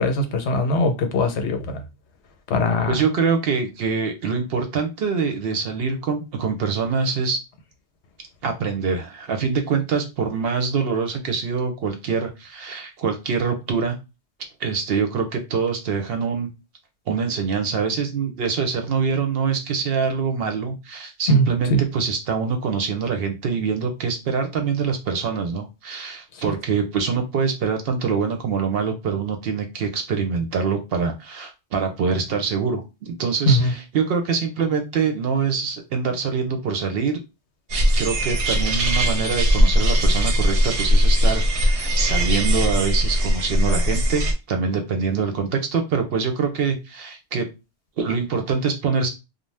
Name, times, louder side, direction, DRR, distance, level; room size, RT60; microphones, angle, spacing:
voice 1, 0.0-1.8 2.5-2.9 21.3-21.8 33.5-33.7, left 1 dB, 80° left, 0.9 m, -20 dB
voice 2, 2.9-7.4 8.4-14.0 14.6-16.5 17.1-37.2 37.9-47.5 48.0-49.1, right 5 dB, 65° right, 0.8 m, -24 dB
sound 1, 37.7-44.3, equal, 90° right, 1.0 m, -19 dB
2.5 x 2.0 x 3.2 m
omnidirectional pair, 1.1 m